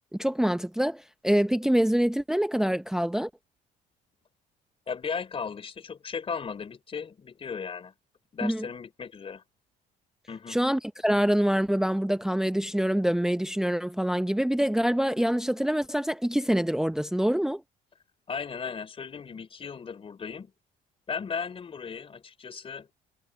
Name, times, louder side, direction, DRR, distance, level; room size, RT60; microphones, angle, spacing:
voice 1, 0.2-3.3 8.4-8.7 10.5-17.6, equal, 5° right, 0.7 m, -25 dB
voice 2, 4.9-7.9 8.3-9.4 10.3-10.6 18.3-20.5 21.1-22.9, left 6 dB, 35° left, 3.8 m, -36 dB
cardioid pair, 110°, 17 cm